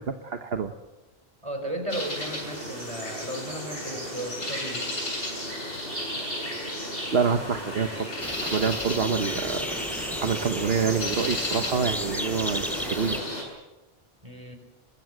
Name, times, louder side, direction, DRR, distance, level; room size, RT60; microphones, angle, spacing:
voice 1, 0.1-0.7 7.1-8.1 8.4-13.2, right 6 dB, 75° right, 7 dB, 1.3 m, -27 dB
voice 2, 1.4-4.9 14.2-14.6, right 1 dB, 30° right, 6 dB, 4.5 m, -35 dB
sound 1, 1.9-13.4, left 1 dB, 65° left, 7.6 m, -33 dB
sound 2, 8.2-13.2, equal, ahead, 1.0 m, -35 dB
24.0 x 22.0 x 7.8 m, 1.0 s
omnidirectional pair, 1.0 m